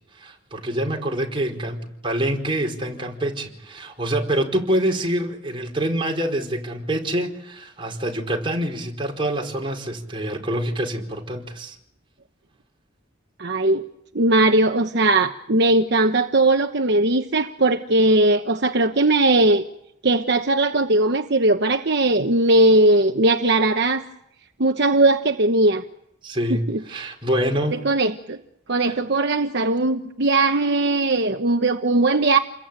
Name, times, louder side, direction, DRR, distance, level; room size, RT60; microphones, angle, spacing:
voice 1, 0.2-11.7 26.2-26.6 26.9-27.7 28.8-28.9, right 1 dB, 25° right, 4.8 m, -26 dB
voice 2, 13.4-13.8 14.1-19.6 20.0-24.0 24.6-25.8 26.5-27.1 27.8-28.4 28.7-32.4, right 2 dB, 55° right, 1.1 m, -19 dB
29.5 x 22.0 x 9.1 m
head